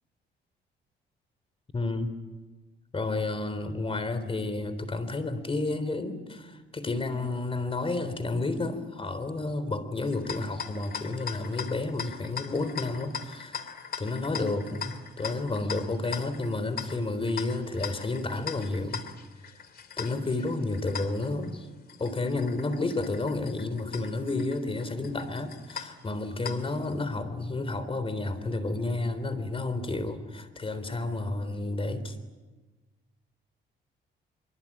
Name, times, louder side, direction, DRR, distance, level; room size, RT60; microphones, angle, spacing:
voice 1, 1.7-2.1 2.9-13.7 14.0-19.0 20.0-21.7 22.0-32.2, left 2 dB, 30° left, 12 dB, 3.7 m, -31 dB
sound 1, 10.0-26.9, left 7 dB, 50° left, 2.7 m, -41 dB
24.5 x 24.0 x 8.7 m, 1.2 s
cardioid pair, 90°, 20 cm